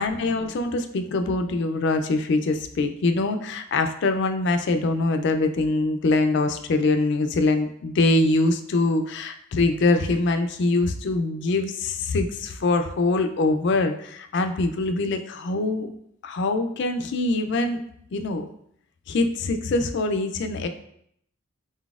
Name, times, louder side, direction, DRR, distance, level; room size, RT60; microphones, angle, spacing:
voice 1, 0.0-15.9 16.2-17.8 18.1-18.5 19.1-20.7, left 2 dB, 55° left, 7 dB, 0.3 m, -23 dB
3.9 x 3.9 x 2.4 m, 0.70 s
head